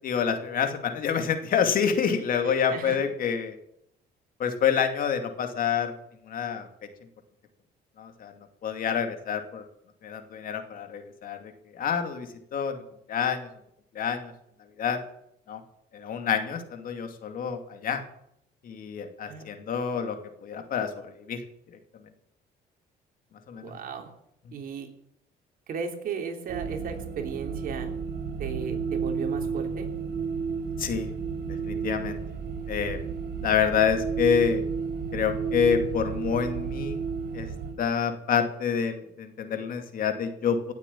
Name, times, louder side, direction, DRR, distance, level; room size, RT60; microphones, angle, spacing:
voice 1, 0.0-3.6 4.4-5.9 6.3-6.7 8.0-8.3 8.6-9.6 10.0-12.8 13.1-13.5 13.9-14.3 14.8-15.0 15.5-15.6 15.9-18.0 18.6-21.4 23.5-23.7 30.8-31.1 31.6-32.2 32.7-33.0 33.4-34.6 35.1-37.0 37.3-37.5 37.8-40.7, left 7 dB, 55° left, 6 dB, 2.5 m, -27 dB
voice 2, 2.4-3.0 19.3-19.5 23.6-24.1 24.5-24.9 25.7-27.9 28.4-29.9, right 6 dB, 55° right, 4 dB, 3.3 m, -35 dB
sound 1, 26.5-37.7, right 5 dB, 75° right, 4.7 m, -32 dB
17.5 x 8.3 x 8.6 m, 0.76 s
cardioid pair, 110°, 17 cm